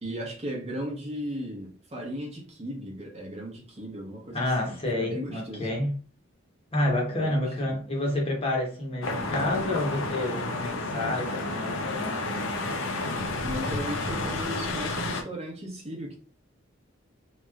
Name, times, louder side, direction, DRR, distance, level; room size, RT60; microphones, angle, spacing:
voice 1, 0.0-5.7 7.1-7.8 13.4-16.2, equal, 30° right, 0.8 m, -36 dB
voice 2, 4.3-6.0 6.7-12.3, left 1 dB, 30° left, 0.9 m, -29 dB
sound 1, 9.0-15.2, left 2 dB, 75° left, 0.6 m, -31 dB
3.0 x 2.7 x 2.3 m
head